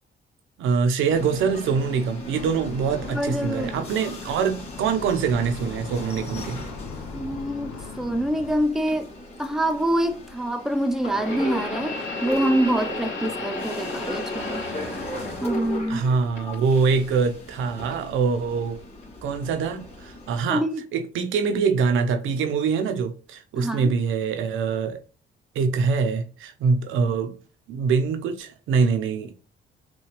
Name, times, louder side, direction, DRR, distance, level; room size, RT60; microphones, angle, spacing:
voice 1, 0.6-6.6 15.9-18.8 19.2-20.6 20.9-25.0 25.5-27.3 27.7-29.3, right 5 dB, 85° right, 0.8 m, -24 dB
sound 1, 1.1-20.4, left 1 dB, 30° left, 2.0 m, -38 dB
sound 2, 2.3-8.6, left 4 dB, 85° left, 1.1 m, -40 dB
voice 2, 3.1-3.7 7.1-9.1 9.4-14.6 15.4-16.1 20.5-20.8 23.6-23.9, right 1 dB, ahead, 0.6 m, -25 dB
sound 3, 8.9-9.0 11.0-16.0 16.4-17.2 17.9-18.1 19.0-19.1, left 2 dB, 65° left, 2.2 m, -33 dB
6.1 x 2.4 x 3.2 m
cardioid pair, 90°, 20 cm